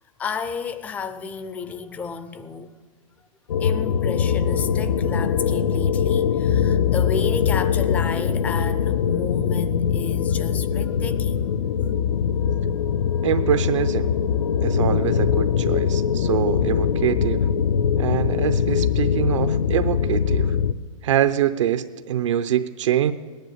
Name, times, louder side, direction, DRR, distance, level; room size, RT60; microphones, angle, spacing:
voice 1, 0.2-2.7 3.6-11.5, left 5 dB, 10° left, 0.4 m, -32 dB
sound 1, 3.5-20.7, left 7 dB, 80° left, 0.7 m, -22 dB
voice 2, 13.2-14.1 14.6-17.4 18.0-20.5 21.0-23.1, right 10 dB, 60° right, 0.7 m, -24 dB
17.5 x 10.5 x 8.0 m
hypercardioid pair, 160°, 17 cm